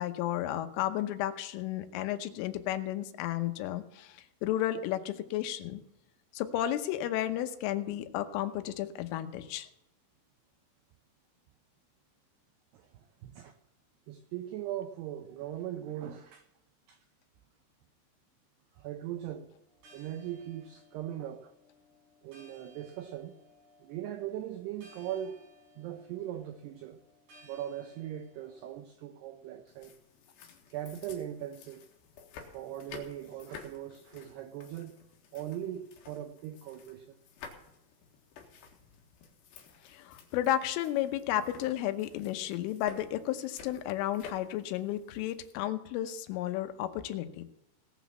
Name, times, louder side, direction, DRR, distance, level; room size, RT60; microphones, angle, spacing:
voice 1, 0.0-4.1 4.4-5.8 6.3-9.7 39.9-47.4, left 12 dB, 85° left, 3.5 m, -33 dB
voice 2, 12.7-13.6 14.1-16.5 16.9-17.0 18.8-19.5 19.9-21.5 22.2-23.5 23.8-25.4 25.8-27.0 27.4-29.9 30.7-31.8 32.5-35.0 35.3-37.2, right 11 dB, 85° right, 2.3 m, -40 dB
sound 1, 19.7-28.7, left 1 dB, 65° right, 7.8 m, -60 dB
sound 2, 29.7-45.5, left 6 dB, 65° left, 3.5 m, -52 dB
18.5 x 6.2 x 7.2 m
omnidirectional pair, 5.7 m